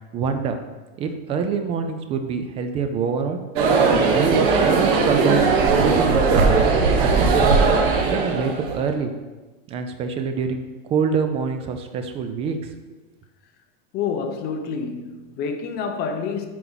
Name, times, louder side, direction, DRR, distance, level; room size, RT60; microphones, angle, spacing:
voice 1, 0.1-0.6 1.0-3.4 3.9-7.6 8.1-9.1 9.7-10.6 10.9-12.7, right 6 dB, 20° right, 0.4 m, -26 dB
sound 1, 3.6-8.8, right 4 dB, 55° right, 1.3 m, -18 dB
voice 2, 13.9-16.5, left 5 dB, 30° left, 0.7 m, -28 dB
9.2 x 4.6 x 4.0 m
supercardioid pair, 160°, 31 cm